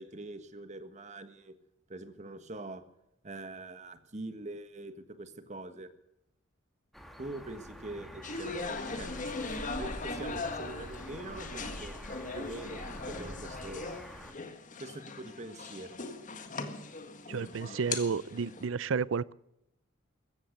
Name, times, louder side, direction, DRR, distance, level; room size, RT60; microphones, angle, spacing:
voice 1, 0.0-1.5 1.9-2.8 3.2-5.9 7.2-9.3 9.7-12.0 12.3-13.9 14.8-16.0, right 2 dB, 35° right, 10 dB, 1.6 m, -44 dB
sound 1, 6.9-14.3, equal, ahead, 2.1 m, -45 dB
sound 2, 8.2-18.7, left 3 dB, 40° left, 1.6 m, -40 dB
voice 2, 17.3-19.3, right 5 dB, 70° right, 21 dB, 0.5 m, -31 dB
15.5 x 14.5 x 6.6 m, 0.82 s
head